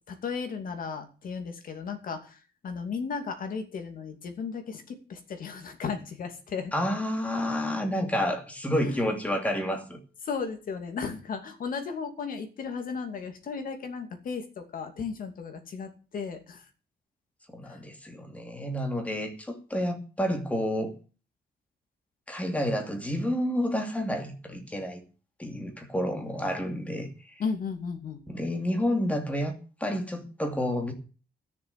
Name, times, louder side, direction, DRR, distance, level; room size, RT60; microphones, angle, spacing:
voice 1, 0.1-2.4 2.6-6.7 8.7-9.0 10.2-16.6 17.7-17.8 27.4-28.2, left 5 dB, 60° left, 2.7 m, -35 dB
voice 2, 6.7-10.0 17.5-20.9 22.3-25.0 25.4-27.4 28.3-30.9, equal, 10° left, 2.6 m, -30 dB
13.0 x 7.0 x 8.3 m
cardioid pair, 145°, 17 cm